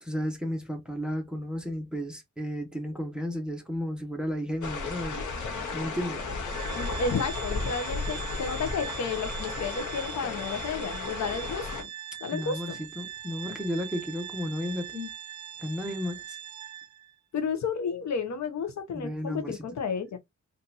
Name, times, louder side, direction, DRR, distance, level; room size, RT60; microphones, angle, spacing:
voice 1, 0.0-5.2 5.7-6.3 6.5-6.6 12.3-15.1 15.6-16.4 18.9-19.6, equal, 5° right, 0.9 m, -33 dB
sound 1, 4.6-11.8, left 3 dB, 90° left, 1.0 m, -34 dB
Organ, 6.5-17.1, right 10 dB, 70° right, 0.5 m, -42 dB
voice 2, 6.7-11.9 12.2-12.8 17.3-20.2, left 5 dB, 70° left, 0.7 m, -32 dB
3.9 x 2.5 x 2.7 m
wide cardioid pair, 135°, 29 cm